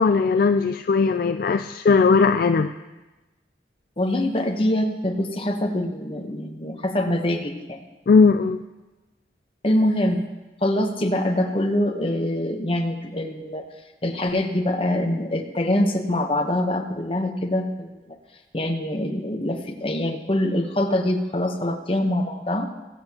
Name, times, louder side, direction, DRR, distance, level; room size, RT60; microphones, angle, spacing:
voice 1, 0.0-2.7 8.1-8.6, left 4 dB, 50° left, 8 dB, 0.3 m, -18 dB
voice 2, 4.0-7.8 9.6-10.3 10.6-13.7 14.0-18.2 18.5-22.6, left 1 dB, 30° left, 4 dB, 0.9 m, -24 dB
23.0 x 7.9 x 2.9 m, 1.1 s
head